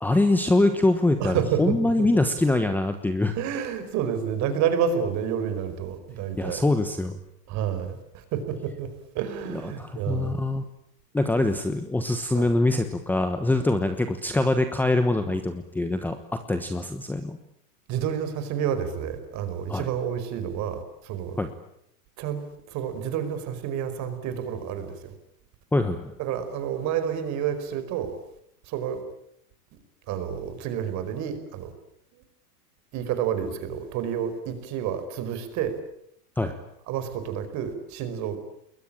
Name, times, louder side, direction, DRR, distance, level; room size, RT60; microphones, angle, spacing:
voice 1, 0.0-3.3 6.4-7.2 9.5-10.6 11.1-17.4 19.7-19.9 21.4-21.5 25.7-26.1 36.4-36.6, left 2 dB, 5° left, 8 dB, 1.1 m, -24 dB
voice 2, 1.2-2.1 3.3-6.6 7.5-10.4 12.3-12.5 17.9-21.4 22.2-25.1 26.2-28.2 28.6-29.0 30.1-31.7 32.9-35.8 36.9-38.4, right 8 dB, 35° right, 10 dB, 5.0 m, -29 dB
29.5 x 21.5 x 8.8 m, 0.75 s
supercardioid pair, 150°, 46 cm